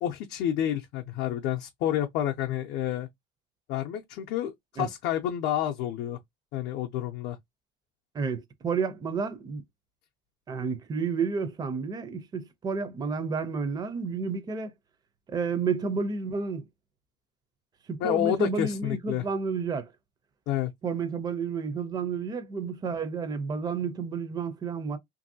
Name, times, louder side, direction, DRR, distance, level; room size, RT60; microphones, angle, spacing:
voice 1, 0.0-3.1 3.7-6.2 6.5-7.4 18.0-19.3 20.5-20.7, left 11 dB, 65° left, 0.5 m, -29 dB
voice 2, 8.1-9.6 10.5-14.7 15.3-16.6 17.9-19.9 20.8-25.0, right 5 dB, 20° right, 0.4 m, -31 dB
2.9 x 2.6 x 2.6 m
cardioid pair, 135°, 20 cm